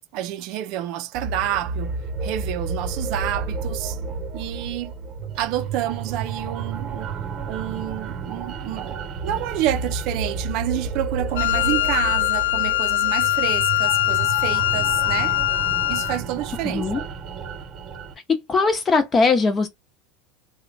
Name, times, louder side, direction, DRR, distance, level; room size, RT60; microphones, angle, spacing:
voice 1, 0.1-4.0 4.3-4.9 5.4-7.1 7.5-9.0 9.2-15.4 15.9-17.1, right 13 dB, 55° right, 0.4 m, -29 dB
sound 1, 1.1-18.1, right 4 dB, 30° right, 1.0 m, -31 dB
Wind instrument woodwind instrument, 11.4-16.2, left 17 dB, 85° left, 0.3 m, -22 dB
voice 2, 16.6-17.0 18.3-19.7, left 4 dB, 20° left, 0.8 m, -20 dB
2.9 x 2.2 x 4.0 m
supercardioid pair, 140°, 0 cm